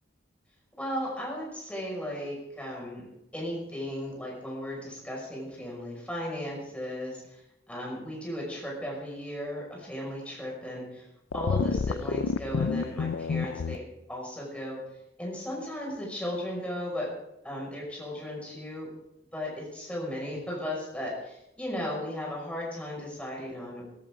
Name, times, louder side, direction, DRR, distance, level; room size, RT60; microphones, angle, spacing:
voice 1, 0.8-3.0 3.3-7.4 7.7-11.1 11.3-13.8 14.1-14.8 15.2-17.1 17.4-18.9 19.3-23.8, left 1 dB, 5° left, -3 dB, 5.9 m, -36 dB
sound 1, 11.3-13.8, left 5 dB, 80° left, 0.4 m, -29 dB
16.5 x 16.0 x 3.8 m, 0.85 s
head